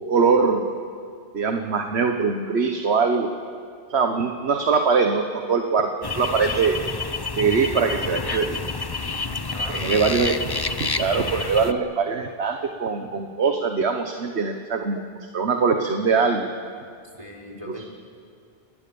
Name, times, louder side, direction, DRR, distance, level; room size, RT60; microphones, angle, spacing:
voice 1, 0.1-0.7 1.3-3.3 3.9-5.9 6.1-6.8 7.3-8.6 9.7-10.3 10.8-15.0 15.3-16.5 17.7-17.8, right 5 dB, 80° right, 5 dB, 1.5 m, -22 dB
sound 1, 6.0-11.7, left 3 dB, 25° left, 0.7 m, -28 dB
voice 2, 9.2-10.2 17.2-17.8, left 1 dB, 30° right, 0 dB, 3.5 m, -39 dB
29.5 x 20.5 x 7.1 m, 2.3 s
omnidirectional pair, 1.1 m